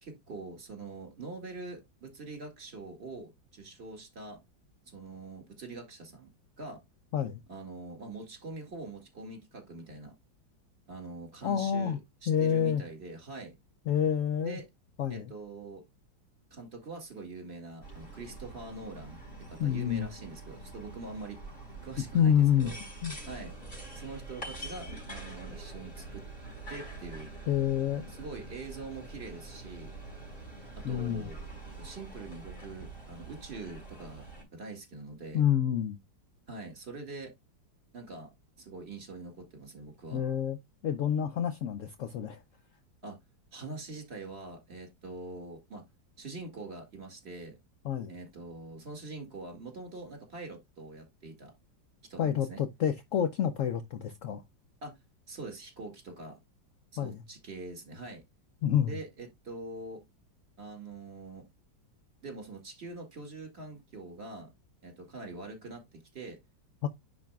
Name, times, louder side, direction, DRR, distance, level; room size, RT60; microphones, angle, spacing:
voice 1, 0.0-4.4 4.9-6.3 6.6-6.8 7.5-10.1 10.9-13.5 14.4-14.7 15.1-15.8 16.5-19.2 19.5-21.4 21.8-22.8 23.3-23.5 23.9-26.3 26.7-27.3 28.1-29.9 30.9-31.4 31.8-34.2 34.5-35.4 36.5-37.3 37.9-38.3 38.6-40.2 43.0-43.2 43.5-45.9 46.2-47.6 48.1-51.5 52.1-52.6 54.8-55.0 55.3-56.4 56.9-58.2 58.9-60.0 60.6-61.5 62.2-64.5 64.8-66.4, right 3 dB, 35° right, 2.4 m, -44 dB
voice 2, 11.4-12.0 12.3-12.8 13.9-14.6 15.0-15.3 19.6-20.1 22.1-22.7 23.0-23.1 27.5-28.0 30.8-31.3 35.3-36.0 40.1-40.6 40.8-42.4 47.8-48.1 52.2-54.4 57.0-57.2 58.6-59.0 66.8-66.9, left 9 dB, 80° left, 0.7 m, -28 dB
sound 1, 17.8-34.4, right 2 dB, 30° left, 4.4 m, -45 dB
10.0 x 4.7 x 2.4 m
omnidirectional pair, 2.0 m